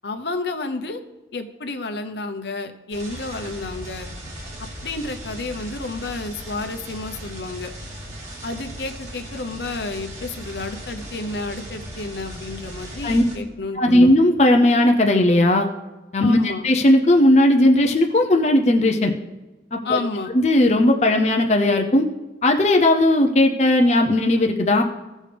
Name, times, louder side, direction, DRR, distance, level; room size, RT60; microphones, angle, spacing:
voice 1, 0.0-1.0 1.3-4.1 4.8-7.7 8.4-14.1 16.2-16.6 19.8-20.3, left 3 dB, 70° left, 7 dB, 0.8 m, -30 dB
sound 1, 2.9-13.4, equal, 40° right, 2.3 m, -37 dB
voice 2, 13.8-15.7 16.1-19.1 19.7-20.0 20.3-22.1 22.4-24.8, left 1 dB, 40° left, 3 dB, 0.6 m, -17 dB
16.0 x 6.3 x 3.4 m, 1.1 s
head